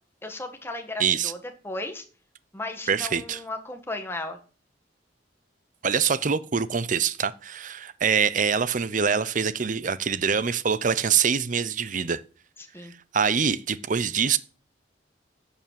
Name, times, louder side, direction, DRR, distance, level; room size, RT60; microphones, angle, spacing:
voice 1, 0.2-1.4 1.6-2.0 2.5-4.4 12.6-12.9, left 2 dB, 15° left, 1.7 m, -35 dB
voice 2, 1.0-1.3 2.9-3.4 5.8-12.2 13.1-14.4, right 6 dB, 45° right, 0.6 m, -24 dB
11.0 x 7.1 x 7.5 m
head